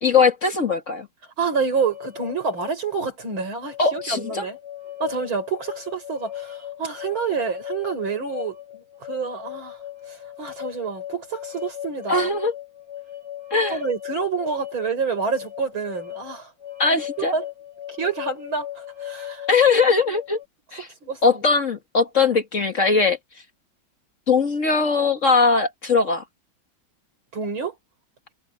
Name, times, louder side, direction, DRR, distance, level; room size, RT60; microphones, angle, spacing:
voice 1, 0.0-1.1 3.8-4.5 12.1-12.5 13.5-13.8 16.8-17.3 19.5-20.4 20.7-20.9 21.2-23.2 24.3-26.2, left 4 dB, 40° left, 2.0 m, -20 dB
voice 2, 1.4-4.6 5.0-9.8 10.1-12.3 13.7-16.5 16.9-17.5 17.9-19.5 20.8-21.4 27.3-27.7, right 5 dB, 85° right, 6.2 m, -28 dB
sound 1, 1.7-20.4, left 12 dB, 60° right, 5.3 m, -37 dB
omnidirectional pair, 2.2 m